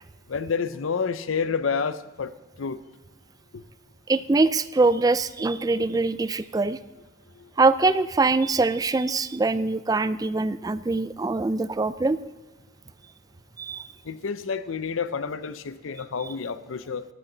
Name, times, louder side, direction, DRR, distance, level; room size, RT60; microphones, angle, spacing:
voice 1, 0.3-2.3 2.6-2.8 14.1-17.1, left 5 dB, 90° left, 14 dB, 0.6 m, -29 dB
voice 2, 4.1-6.8 7.6-12.2 13.6-13.9 16.2-16.3, right 3 dB, 20° right, 15 dB, 0.3 m, -23 dB
13.5 x 12.0 x 3.9 m, 1.2 s
head